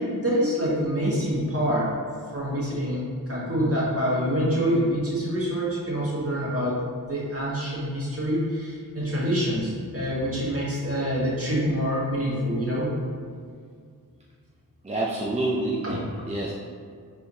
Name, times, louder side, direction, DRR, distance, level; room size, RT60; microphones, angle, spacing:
voice 1, 0.0-1.9 2.3-12.9 15.8-16.0, equal, 35° right, -6 dB, 1.4 m, -26 dB
voice 2, 14.8-16.5, right 2 dB, 20° right, -4 dB, 0.4 m, -28 dB
4.3 x 3.5 x 2.7 m, 2.1 s
wide cardioid pair, 45°, 39 cm